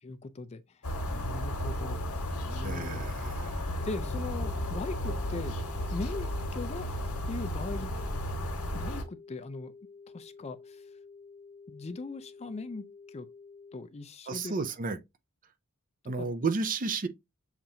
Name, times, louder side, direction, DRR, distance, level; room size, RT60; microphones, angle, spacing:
voice 1, 0.0-6.9 7.3-7.9 8.7-9.7 10.1-10.9 11.7-13.3 13.7-14.6 16.2-16.3, left 3 dB, 30° left, 0.4 m, -40 dB
sound 1, 0.8-9.0, left 1 dB, 80° left, 1.4 m, -34 dB
voice 2, 2.6-3.5 14.3-15.0 16.1-17.1, right 4 dB, 40° right, 0.5 m, -32 dB
sound 2, 3.8-13.8, left 4 dB, 15° right, 1.0 m, -51 dB
7.2 x 2.5 x 2.7 m
head